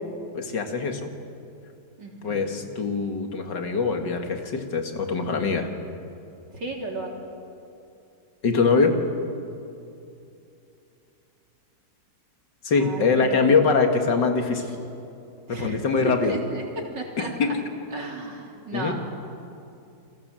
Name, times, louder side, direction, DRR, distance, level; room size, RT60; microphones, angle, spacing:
voice 1, 0.3-1.1 2.2-5.7 8.4-9.0 12.6-14.7 15.5-16.4 17.2-17.6 18.7-18.9, left 4 dB, 75° left, 5 dB, 2.6 m, -23 dB
voice 2, 2.0-2.5 6.5-7.2 12.8-13.4 15.5-15.8 16.0-17.5 17.9-18.9, right 2 dB, 70° right, 0 dB, 4.2 m, -33 dB
30.0 x 22.0 x 7.7 m, 2.7 s
omnidirectional pair, 1.9 m